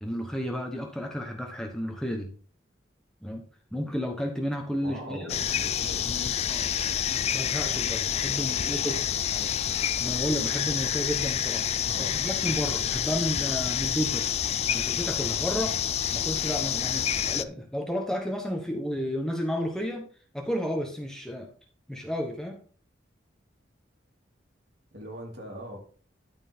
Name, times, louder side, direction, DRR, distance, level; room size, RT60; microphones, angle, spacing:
voice 1, 0.0-2.3 3.2-3.4 3.7-5.4 6.5-6.6 7.0-9.0 10.0-11.6 12.1-14.3 14.7-15.7 16.1-20.1 20.3-21.5 21.9-22.6, equal, 5° left, 2 dB, 1.1 m, -32 dB
voice 2, 4.8-6.3 8.3-9.0 9.3-9.5 11.9-12.1 24.9-25.8, equal, 60° right, 0 dB, 2.7 m, -41 dB
sound 1, 5.3-17.4, left 9 dB, 35° left, 0.3 m, -28 dB
12.5 x 4.5 x 4.3 m, 0.44 s
head